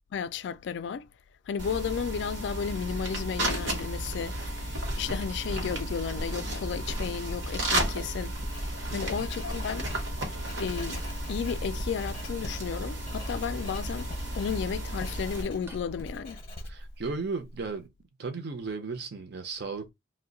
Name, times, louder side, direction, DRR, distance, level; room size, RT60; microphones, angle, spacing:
voice 1, 0.1-1.1 1.5-9.9 10.6-11.0 11.3-14.1 14.4-16.4, left 7 dB, 65° left, 0.3 m, -33 dB
sound 1, 1.6-15.4, right 1 dB, 75° right, 0.9 m, -33 dB
Writing, 8.3-17.7, left 1 dB, 30° left, 0.7 m, -41 dB
Cutlery silverware, 8.8-16.5, equal, 10° right, 0.5 m, -48 dB
voice 2, 8.9-9.2 16.6-17.9 18.2-19.9, right 4 dB, 60° right, 0.6 m, -35 dB
2.7 x 2.1 x 3.8 m
head